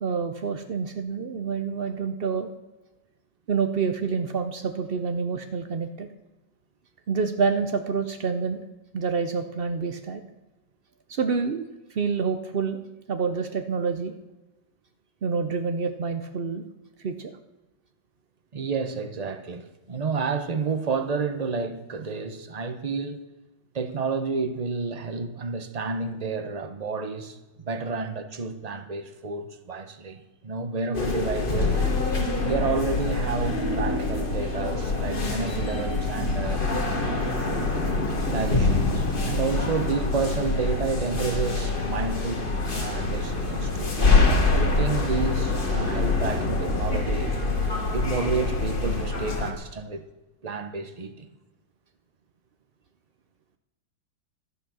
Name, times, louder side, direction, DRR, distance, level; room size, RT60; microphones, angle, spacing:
voice 1, 0.0-2.5 3.5-6.1 7.1-8.6 8.9-10.2 11.1-11.6 11.9-12.8 13.1-14.1 15.2-16.7 17.0-17.3, right 5 dB, 80° right, 0.5 m, -27 dB
voice 2, 18.5-23.2 23.7-31.8 32.4-36.6 37.2-37.7 38.3-43.9 44.5-47.3 47.9-50.0 50.4-51.3, right 4 dB, 30° right, 0.7 m, -30 dB
sound 1, 30.9-49.5, left 3 dB, 30° left, 1.8 m, -25 dB
12.5 x 9.9 x 6.3 m
omnidirectional pair, 2.0 m